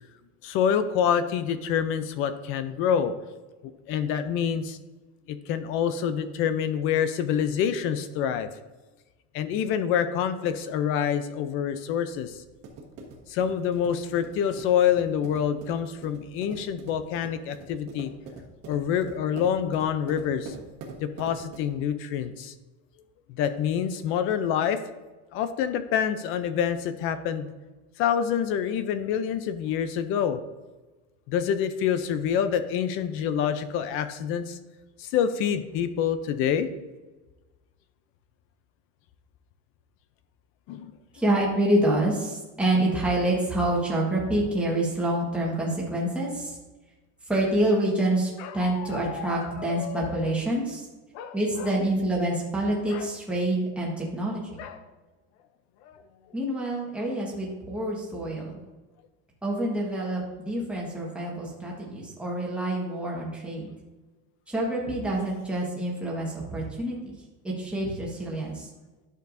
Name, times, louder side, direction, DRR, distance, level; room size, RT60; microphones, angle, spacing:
voice 1, 0.4-3.1 3.6-4.8 5.3-8.5 9.3-12.4 13.3-18.1 18.7-20.5 21.0-22.5 23.3-24.8 25.3-27.5 28.0-30.4 31.3-34.6 35.0-36.7 40.7-40.9, left 8 dB, 35° left, 11 dB, 0.4 m, -26 dB
sound 1, 12.1-21.9, right 3 dB, 40° right, 1.3 m, -44 dB
voice 2, 41.1-46.5 47.3-50.8 51.3-54.4 56.3-58.5 59.4-63.7 64.5-67.0 67.4-68.7, right 1 dB, 5° right, -4 dB, 1.3 m, -27 dB
Bark, 48.4-50.5 51.1-51.9 52.2-52.4 52.8-53.1 54.6-54.9 55.4-55.5 55.8-56.3, left 9 dB, 75° left, 0.7 m, -39 dB
11.0 x 6.8 x 2.6 m, 1.2 s
cardioid pair, 175°, 36 cm